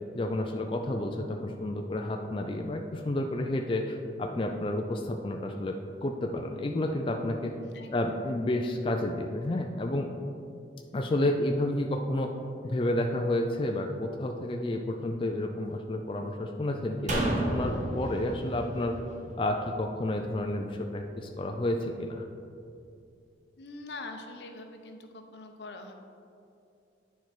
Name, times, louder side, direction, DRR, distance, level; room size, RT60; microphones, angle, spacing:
voice 1, 0.1-7.5 7.9-10.1 10.9-12.3 12.6-19.0 19.4-22.2, left 1 dB, 30° left, 3 dB, 0.4 m, -30 dB
voice 2, 7.6-7.9 23.6-25.9, left 2 dB, 75° left, 4 dB, 0.7 m, -43 dB
sound 1, 17.1-20.4 20.7-20.8, right 1 dB, 40° right, 0.9 m, -33 dB
9.3 x 4.6 x 4.4 m, 2.5 s
head